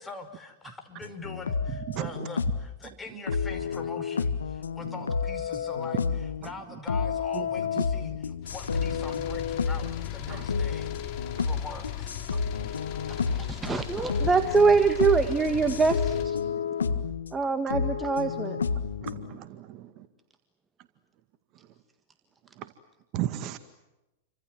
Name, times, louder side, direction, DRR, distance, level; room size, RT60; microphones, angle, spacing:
voice 1, 0.0-12.1, left 3 dB, 15° left, 6 dB, 5.2 m, -43 dB
sound 1, 1.0-2.7 3.3-6.5 6.9-17.3 17.7-19.4, left 6 dB, 85° left, 1.7 m, -30 dB
sound 2, 8.4-16.2, left 10 dB, 45° left, 4.8 m, -38 dB
voice 2, 13.1-16.4 17.3-18.6, right 4 dB, 15° right, 9 dB, 1.7 m, -24 dB
voice 3, 19.0-19.9 23.1-23.6, right 13 dB, 45° right, 10 dB, 2.0 m, -34 dB
30.0 x 25.5 x 7.8 m, 0.98 s
hypercardioid pair, 100°, 0 cm